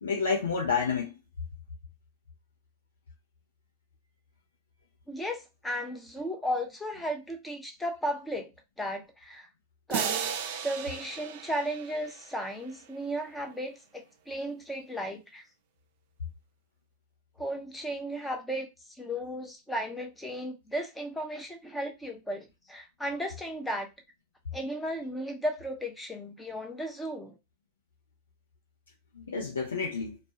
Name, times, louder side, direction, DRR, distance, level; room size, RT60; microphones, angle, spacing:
voice 1, 0.0-1.1 29.1-30.2, left 5 dB, 85° left, 0.5 m, -29 dB
voice 2, 5.1-8.5 8.8-9.5 9.9-15.4 17.4-18.7 19.0-23.9 24.5-27.4, equal, 10° left, 0.7 m, -35 dB
sound 1, 9.9-12.7, right 7 dB, 65° right, 0.4 m, -35 dB
2.3 x 2.0 x 2.7 m
hypercardioid pair, 100°, 0 cm